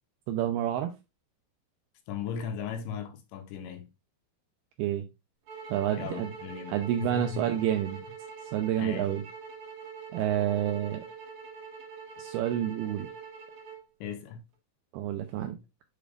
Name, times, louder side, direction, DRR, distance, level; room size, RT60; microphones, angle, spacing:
voice 1, 0.3-0.9 4.8-5.1 5.7-6.3 6.7-8.0 8.5-9.2 10.1-11.0 12.2-13.1 14.9-15.6, right 11 dB, 85° right, 2.3 m, -29 dB
voice 2, 2.1-3.9 6.0-7.5 8.8-9.1 14.0-14.4, left 7 dB, 90° left, 3.3 m, -37 dB
sound 1, 5.5-13.8, right 5 dB, 65° right, 1.9 m, -44 dB
7.5 x 5.1 x 2.4 m
omnidirectional pair, 5.1 m